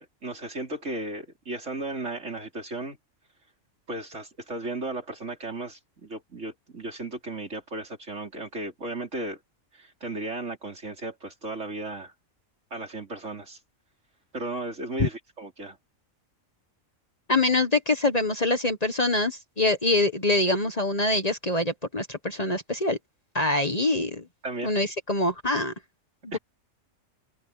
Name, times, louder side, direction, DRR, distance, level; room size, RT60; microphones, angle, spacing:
voice 1, 0.0-3.0 3.9-9.4 9.7-12.1 12.7-13.6 14.3-15.8 24.4-24.7 26.3-26.4, right 2 dB, 65° right, 4.4 m, -35 dB
voice 2, 17.3-23.0 23.3-24.2 24.6-25.7, left 2 dB, 30° left, 1.4 m, -24 dB
open air
omnidirectional pair, 1.4 m